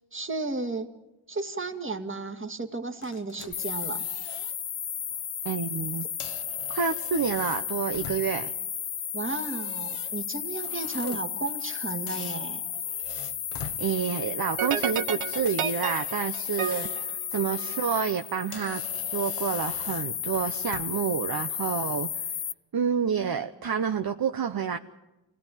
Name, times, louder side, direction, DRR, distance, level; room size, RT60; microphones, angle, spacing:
voice 1, 0.1-0.9 1.3-4.0 9.1-12.6, right 3 dB, 25° right, 6 dB, 2.1 m, -33 dB
sound 1, 3.0-4.6 5.0-5.2 6.0-8.5 9.2-11.8 12.1-13.8 15.3-17.1 17.5-17.7 18.2-18.3 18.5-21.1, left 7 dB, 85° left, 1.4 m, -46 dB
sound 2, 3.5-22.5, left 9 dB, 45° left, 0.8 m, -33 dB
voice 2, 5.4-6.1 6.7-8.5 11.0-11.2 13.8-22.3 22.7-24.8, right 7 dB, 45° right, 6 dB, 1.0 m, -29 dB
sound 3, 14.6-18.0, right 9 dB, 85° right, 1.3 m, -32 dB
26.0 x 17.5 x 9.3 m, 1.0 s
cardioid pair, 80°, 50 cm